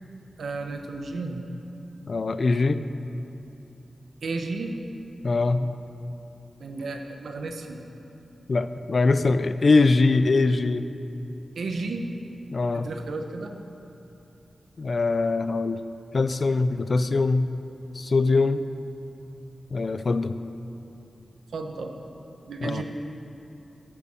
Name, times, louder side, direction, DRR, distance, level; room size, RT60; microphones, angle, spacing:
voice 1, 0.4-1.4 4.2-4.8 6.6-7.8 11.6-12.1 12.7-13.5 21.5-21.9 22.5-22.8, right 3 dB, 90° right, 4 dB, 1.0 m, -33 dB
voice 2, 2.1-2.8 5.2-5.7 8.5-10.9 12.5-12.9 14.8-15.8 16.1-17.5 18.0-18.7 19.7-20.3 22.6-22.8, left 3 dB, 50° left, 12 dB, 0.4 m, -22 dB
9.1 x 8.2 x 7.3 m, 2.9 s
wide cardioid pair, 120°, 0 cm